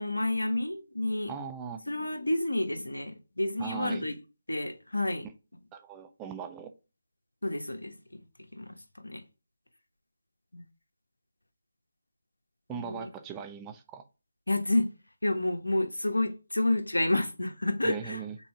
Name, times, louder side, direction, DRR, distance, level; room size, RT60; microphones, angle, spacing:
voice 1, 0.0-1.3 1.9-4.1 4.5-5.3 7.4-7.9 8.5-8.8 9.0-9.2 10.5-10.6 12.7-13.1 14.5-14.9 15.2-18.2, left 1 dB, 85° left, 1.3 m, -29 dB
voice 2, 1.3-1.8 3.6-4.1 5.7-6.7 12.7-14.0 17.8-18.4, right 7 dB, 15° right, 0.5 m, -39 dB
6.0 x 4.1 x 4.7 m
figure-of-eight pair, 155°, 0 cm